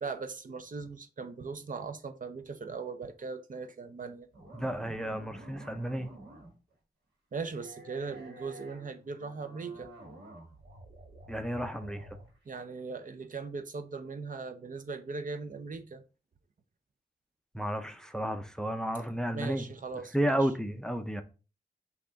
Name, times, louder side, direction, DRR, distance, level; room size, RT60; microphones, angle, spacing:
voice 1, 0.0-4.3 7.3-9.9 12.5-16.0 19.3-20.5, right 4 dB, 50° right, 0.5 m, -39 dB
sound 1, 4.3-6.7 7.5-12.5, right 1 dB, 85° right, 1.6 m, -50 dB
voice 2, 4.5-6.1 11.3-12.1 17.5-19.7 20.1-21.2, right 1 dB, 5° left, 0.5 m, -32 dB
5.8 x 2.4 x 3.8 m
wide cardioid pair, 105°, 17 cm